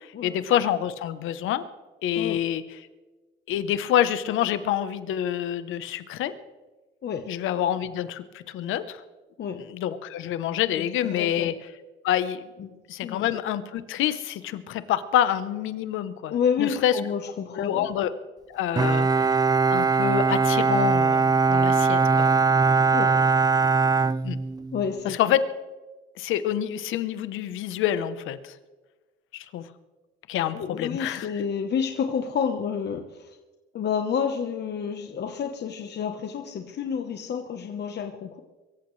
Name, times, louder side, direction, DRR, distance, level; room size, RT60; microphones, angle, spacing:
voice 1, 0.0-1.6 2.0-2.6 3.5-6.3 7.3-9.0 9.7-11.5 12.0-12.5 12.9-16.9 17.5-18.1 18.5-19.3 19.7-22.3 24.2-24.4 25.0-25.4 26.2-28.6 29.3-29.7 30.3-31.3, left 11 dB, 90° left, 13 dB, 0.9 m, -27 dB
voice 2, 10.8-11.5 12.6-12.7 13.0-13.4 16.3-17.9 22.9-23.1 24.7-25.2 30.5-33.4 33.7-38.4, left 7 dB, 60° left, 5 dB, 1.1 m, -29 dB
Bowed string instrument, 18.8-24.9, right 4 dB, 20° right, 0.5 m, -21 dB
23.5 x 14.5 x 3.3 m, 1.2 s
cardioid pair, 90°, 20 cm